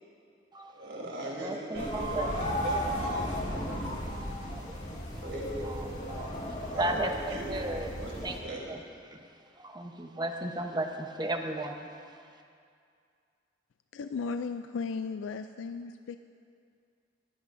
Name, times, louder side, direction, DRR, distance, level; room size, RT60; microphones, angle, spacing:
voice 1, 0.7-6.0 6.6-8.6, right 1 dB, 75° right, -3 dB, 3.3 m, -41 dB
voice 2, 1.4-2.3 3.3-3.4 4.5-5.0 5.6-7.9 8.2-8.4 8.7-8.8 9.1-9.3 9.6-11.9, right 1 dB, 25° right, 4 dB, 0.9 m, -35 dB
sound 1, 1.7-8.4, equal, 40° left, 2.0 m, -35 dB
voice 3, 13.9-16.2, left 5 dB, 85° left, 8 dB, 0.4 m, -35 dB
19.5 x 15.0 x 2.6 m, 2.3 s
head